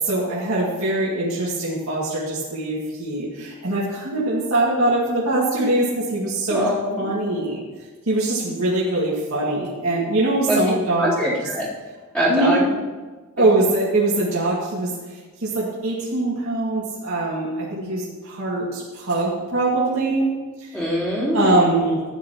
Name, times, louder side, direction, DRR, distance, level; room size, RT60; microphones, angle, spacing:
voice 1, 0.0-6.7 7.0-7.6 8.1-11.3 12.3-12.5 13.4-14.9 15.4-20.3 20.6-20.7 21.3-22.0, right 2 dB, 75° right, -7 dB, 2.2 m, -22 dB
voice 2, 6.5-7.2 10.5-10.6 11.0-11.7 12.1-12.6 20.7-21.8, equal, 5° left, -9 dB, 3.6 m, -23 dB
13.5 x 9.5 x 3.0 m, 1.3 s
head